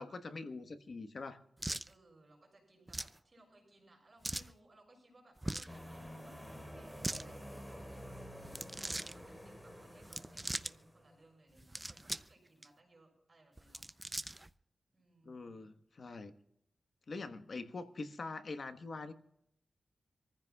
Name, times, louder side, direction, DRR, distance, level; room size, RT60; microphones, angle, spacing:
voice 1, 0.0-1.4 15.2-16.3 17.1-19.1, left 3 dB, 60° left, 8 dB, 1.3 m, -44 dB
sound 1, 1.6-1.9 2.9-3.2 4.2-4.5 5.4-5.8 6.8-7.2 8.4-9.1 10.0-10.7 11.6-12.3 12.6-12.7 13.6-14.5, right 1 dB, 15° right, 0.5 m, -40 dB
voice 2, 1.8-8.2 8.7-13.9 14.9-15.6, right 1 dB, 40° right, 1 dB, 6.6 m, -64 dB
sound 2, 5.7-11.2, equal, 10° left, 3.8 m, -50 dB
26.5 x 15.0 x 2.4 m, 0.77 s
wide cardioid pair, 80°, 0 cm